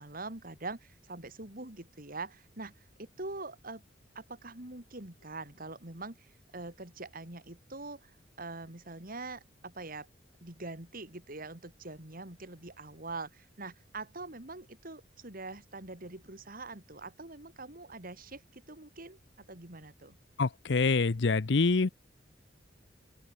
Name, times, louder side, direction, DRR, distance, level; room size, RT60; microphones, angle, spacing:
voice 1, 0.0-3.8 4.1-8.1 8.4-10.1 10.4-20.2, right 3 dB, 50° right, 3.4 m, -44 dB
voice 2, 20.4-21.9, left 4 dB, 65° left, 0.7 m, -26 dB
open air
head